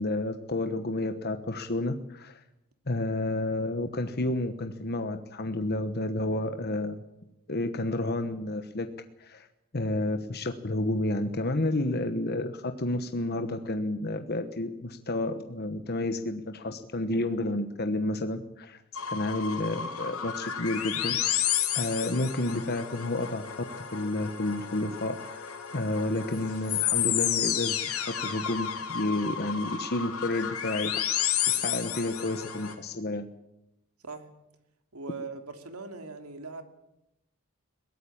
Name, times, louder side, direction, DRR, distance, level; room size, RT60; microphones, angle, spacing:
voice 1, 0.0-2.4 2.9-7.0 7.5-8.9 9.2-9.5 9.7-18.8 19.1-21.5 21.7-23.5 23.8-30.9 31.5-33.3, left 2 dB, 45° left, 7 dB, 1.2 m, -30 dB
sound 1, 19.0-32.7, left 10 dB, 80° left, 3.0 m, -31 dB
voice 2, 34.9-36.6, right 4 dB, 85° right, 6 dB, 2.9 m, -40 dB
22.0 x 18.0 x 8.8 m, 0.90 s
head